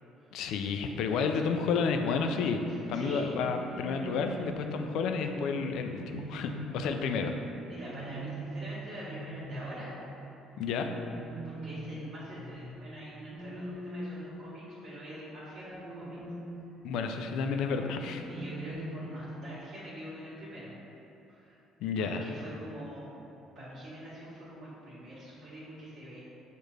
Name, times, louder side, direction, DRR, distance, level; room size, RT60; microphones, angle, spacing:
voice 1, 0.3-2.6 2.9-7.3 10.6-10.9 16.8-18.3 21.8-22.2, left 5 dB, 75° left, 5 dB, 0.3 m, -31 dB
voice 2, 2.7-3.3 7.7-9.9 11.4-16.2 18.3-20.7 21.3-21.6 22.0-23.1 23.5-26.2, equal, 60° right, -11 dB, 1.3 m, -44 dB
sound 1, 3.4-15.0 15.7-17.0 18.0-19.6, right 1 dB, 5° right, 1.1 m, -43 dB
6.4 x 2.4 x 3.2 m, 2.9 s
cardioid pair, 105°, 0 cm